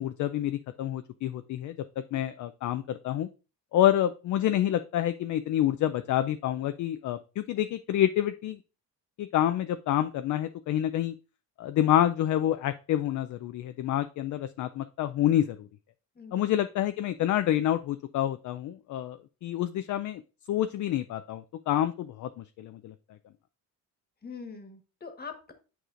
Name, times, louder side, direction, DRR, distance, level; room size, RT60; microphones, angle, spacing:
voice 1, 0.0-1.8 2.1-3.3 3.7-8.6 9.2-11.1 11.6-15.7 16.3-20.2 20.5-22.9, left 12 dB, 55° left, 10 dB, 0.4 m, -28 dB
voice 2, 16.2-16.5 24.2-25.5, left 5 dB, 25° left, 6 dB, 1.4 m, -43 dB
9.2 x 4.8 x 2.5 m, 0.32 s
cardioid pair, 105°, 37 cm